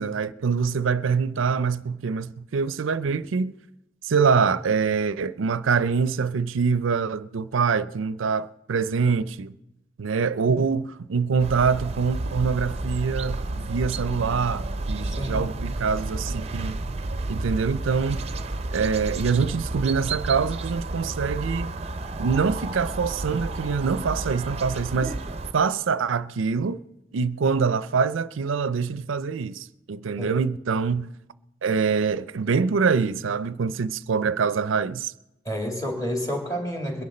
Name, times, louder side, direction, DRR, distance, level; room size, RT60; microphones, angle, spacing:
voice 1, 0.0-3.5 4.0-9.5 10.0-16.8 17.3-18.2 18.7-21.7 22.2-25.2 25.5-26.8 27.1-31.1 31.6-35.1, right 5 dB, 90° right, 0.5 m, -24 dB
sound 1, 11.4-25.5, right 2 dB, 30° right, 0.6 m, -31 dB
voice 2, 15.2-15.5 30.2-30.3 35.4-37.0, equal, 20° left, 2.5 m, -29 dB
22.0 x 10.5 x 4.3 m
head